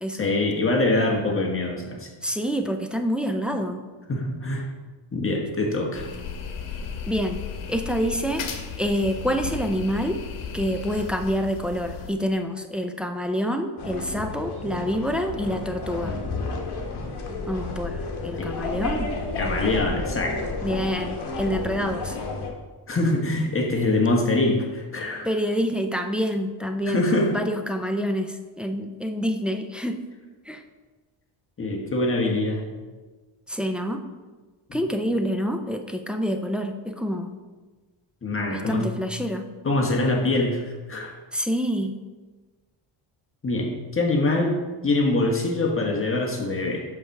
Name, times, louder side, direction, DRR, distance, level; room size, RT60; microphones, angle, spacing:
voice 1, 0.2-2.1 4.1-4.7 5.1-6.1 18.4-18.5 19.4-20.4 22.9-25.3 26.9-27.3 31.6-32.6 34.7-34.8 38.2-38.9 39.6-41.1 43.4-46.8, left 2 dB, 25° left, 0 dB, 1.4 m, -24 dB
voice 2, 2.2-3.8 7.1-7.4 7.7-8.5 8.8-10.2 10.5-16.2 17.5-19.1 20.6-22.2 25.2-27.0 27.3-30.0 30.5-30.6 33.5-34.0 34.7-37.3 38.5-39.5 41.3-41.9, equal, ahead, 5 dB, 0.4 m, -27 dB
sound 1, 5.9-12.1, left 6 dB, 80° left, 1.1 m, -35 dB
sound 2, 13.8-22.5, left 3 dB, 55° left, 1.5 m, -31 dB
5.5 x 4.7 x 6.4 m, 1.3 s
cardioid pair, 120°, 49 cm